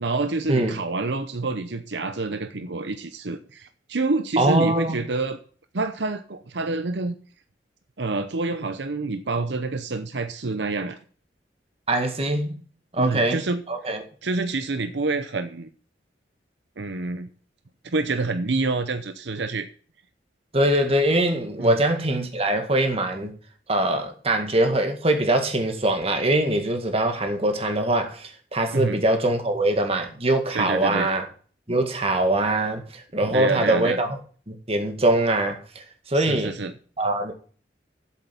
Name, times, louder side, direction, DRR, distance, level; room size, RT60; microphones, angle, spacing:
voice 1, 0.0-5.4 5.7-7.1 8.0-11.0 13.0-13.6 14.2-15.7 16.8-17.3 17.9-19.7 21.6-21.8 28.7-29.0 30.5-31.1 33.2-34.0 36.1-36.7, right 3 dB, 75° right, 0.8 m, -27 dB
voice 2, 4.4-5.0 11.9-12.6 12.9-14.0 20.5-23.3 23.7-31.2 31.7-34.2 34.5-35.6 36.1-36.6 37.0-37.3, right 1 dB, 35° right, 1.9 m, -23 dB
8.0 x 7.6 x 8.4 m
head